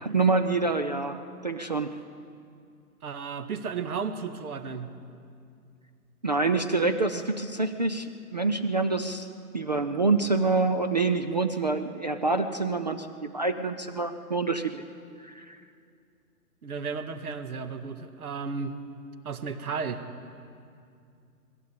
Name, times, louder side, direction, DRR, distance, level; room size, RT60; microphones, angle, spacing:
voice 1, 0.0-1.9 6.2-9.3 9.5-14.8 15.2-15.6, right 3 dB, 30° right, 8 dB, 0.4 m, -26 dB
voice 2, 3.0-4.9 16.6-18.8 19.2-20.0, right 5 dB, 70° right, 9 dB, 1.8 m, -34 dB
20.0 x 16.0 x 8.5 m, 2.4 s
hypercardioid pair, 150°, 46 cm